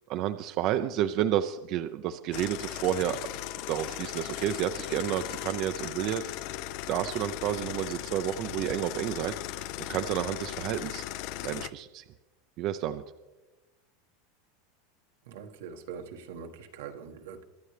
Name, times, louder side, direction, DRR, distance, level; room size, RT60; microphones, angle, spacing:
voice 1, 0.1-3.2 3.7-6.3 6.9-11.0 11.4-12.1 12.6-13.0, right 11 dB, 45° right, 0.5 m, -30 dB
sound 1, 2.3-11.7, left 14 dB, 55° left, 0.5 m, -37 dB
Wind instrument woodwind instrument, 3.1-7.3, left 9 dB, 70° left, 2.8 m, -51 dB
voice 2, 15.2-17.4, right 6 dB, 85° right, 1.4 m, -43 dB
23.5 x 10.5 x 3.3 m
supercardioid pair, 145°, 0 cm